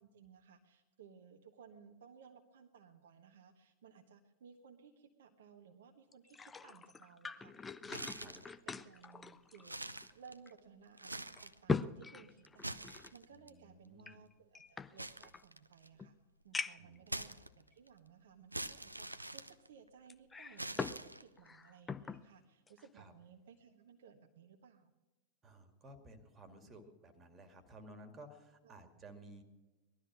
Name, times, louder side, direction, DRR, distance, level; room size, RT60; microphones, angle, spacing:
voice 1, 0.0-8.4 8.7-9.8 10.1-16.1 16.4-24.9 28.6-28.9, right 6 dB, 60° right, 4 dB, 1.2 m, -60 dB
sound 1, 6.1-10.1 10.5-10.6 11.1-13.1 14.0-15.4 16.0-16.1 16.5-17.0 17.7-17.8 20.1-21.0 21.4-22.2 22.7-22.9, left 4 dB, 15° left, 0.6 m, -42 dB
sound 2, 7.8-8.5 9.0-9.1 9.6-10.6 10.9-11.6 12.4-13.5 15.0-16.0 17.1-17.9 18.5-20.1 20.6-21.5, right 1 dB, 85° right, 0.6 m, -45 dB
voice 2, 13.3-14.2 16.8-17.1 22.9-23.1 25.4-29.4, right 1 dB, 20° right, 7 dB, 2.4 m, -56 dB
19.0 x 12.5 x 6.1 m, 1.1 s
figure-of-eight pair, 90°, 0 cm